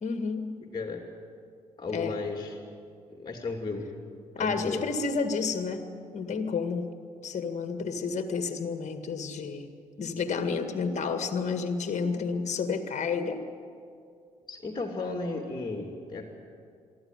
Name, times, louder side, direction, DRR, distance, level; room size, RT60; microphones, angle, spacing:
voice 1, 0.0-0.6 1.9-2.1 4.4-6.9 7.2-9.7 10.0-13.4, left 5 dB, 40° left, 8 dB, 1.9 m, -30 dB
voice 2, 1.8-2.6 3.1-3.9 4.4-4.8 14.5-16.3, left 3 dB, 25° left, 3 dB, 2.7 m, -34 dB
23.5 x 13.5 x 9.6 m, 2.3 s
figure-of-eight pair, 45°, 18 cm